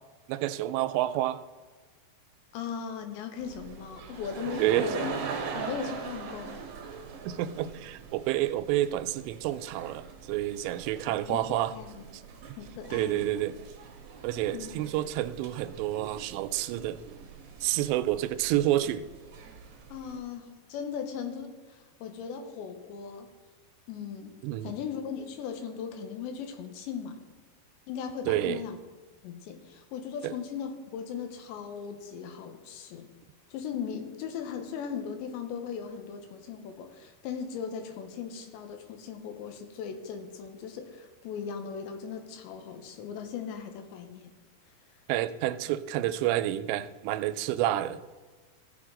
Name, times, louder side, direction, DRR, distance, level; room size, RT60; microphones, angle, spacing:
voice 1, 0.3-1.4 4.6-4.9 7.3-11.7 12.9-13.6 14.2-17.2 17.6-19.1 24.4-24.7 28.3-28.6 30.2-30.3 45.1-48.0, right 13 dB, 85° right, 11 dB, 2.8 m, -29 dB
voice 2, 2.5-5.1 5.5-6.6 11.0-12.0 12.6-13.4 14.5-14.7 19.9-23.3 23.9-27.2 27.9-28.8 29.2-33.1 33.5-44.3, left 7 dB, 90° left, 6 dB, 3.3 m, -38 dB
sound 1, 3.4-20.2, right 6 dB, 70° right, 1.8 m, -42 dB
15.5 x 6.4 x 3.8 m, 1.4 s
omnidirectional pair, 4.9 m